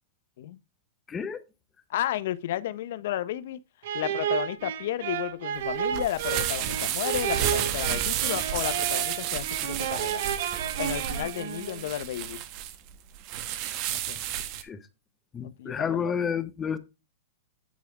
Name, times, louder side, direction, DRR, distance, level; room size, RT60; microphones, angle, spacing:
voice 1, 1.1-1.4 14.6-14.8 15.3-16.8, left 7 dB, 15° left, 0.7 m, -30 dB
voice 2, 1.9-3.6 3.9-10.2 10.8-12.4 13.9-14.2 15.4-16.1, left 12 dB, 65° left, 0.6 m, -33 dB
sound 1, 3.8-11.9, right 9 dB, 65° right, 1.1 m, -32 dB
sound 2, 5.6-14.6, right 10 dB, 40° right, 1.1 m, -31 dB
9.4 x 3.5 x 4.7 m
hypercardioid pair, 145°, 0 cm